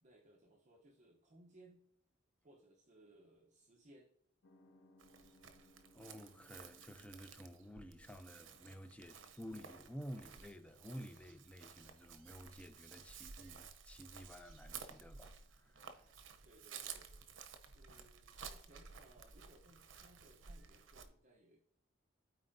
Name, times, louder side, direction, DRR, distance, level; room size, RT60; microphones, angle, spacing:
voice 1, 0.0-1.9 2.4-4.1 16.4-17.1 17.7-21.6, right 1 dB, 40° right, 0.8 m, -64 dB
sound 1, 4.4-13.4, left 1 dB, 70° left, 1.0 m, -70 dB
Chirp tweet, 5.0-21.1, right 6 dB, 85° right, 0.8 m, -54 dB
voice 2, 5.9-16.1, equal, 5° left, 0.5 m, -52 dB
13.0 x 4.3 x 2.7 m
head